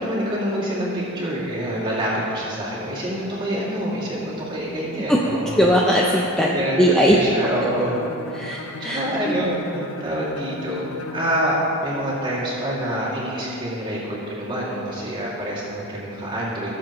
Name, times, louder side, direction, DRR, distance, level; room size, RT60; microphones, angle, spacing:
voice 1, 0.0-5.6 5.9-6.1 6.4-8.0 8.8-10.9 11.1-16.8, equal, 20° right, -7 dB, 2.4 m, -26 dB
voice 2, 5.5-7.2 8.3-9.4, equal, 5° left, -3 dB, 0.5 m, -19 dB
Bowed string instrument, 7.5-11.7, left 3 dB, 70° left, 0.7 m, -37 dB
18.0 x 7.4 x 3.1 m, 2.9 s
head